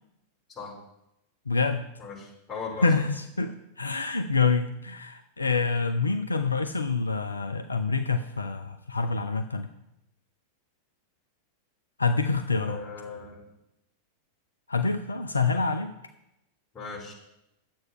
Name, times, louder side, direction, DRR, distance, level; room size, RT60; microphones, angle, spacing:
voice 1, 1.5-1.8 2.8-9.7 12.0-12.8 14.7-15.9, left 4 dB, 80° left, 7 dB, 0.6 m, -26 dB
voice 2, 2.0-2.9 12.7-13.4 16.7-17.1, left 4 dB, 25° left, -3 dB, 4.5 m, -38 dB
10.5 x 8.0 x 5.6 m, 0.87 s
figure-of-eight pair, 90°, 0 cm